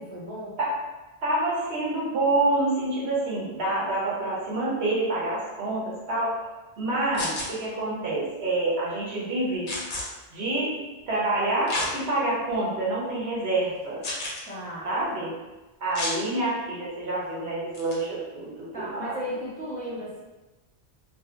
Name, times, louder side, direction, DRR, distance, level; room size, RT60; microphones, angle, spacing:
voice 1, 0.1-0.6 14.5-14.9 18.7-20.2, equal, 10° left, -9 dB, 0.6 m, -35 dB
voice 2, 1.2-6.4 6.8-9.7 10.3-10.7 11.1-14.0 14.8-15.3 15.8-19.2, right 2 dB, 85° right, -6 dB, 1.1 m, -27 dB
sound 1, 7.1-7.5 9.7-10.0 11.7-11.9 12.5-12.6 14.0-14.4 15.9-16.2 17.7-17.9, left 2 dB, 55° left, 0.7 m, -30 dB
2.7 x 2.6 x 2.4 m, 1.1 s
omnidirectional pair, 1.1 m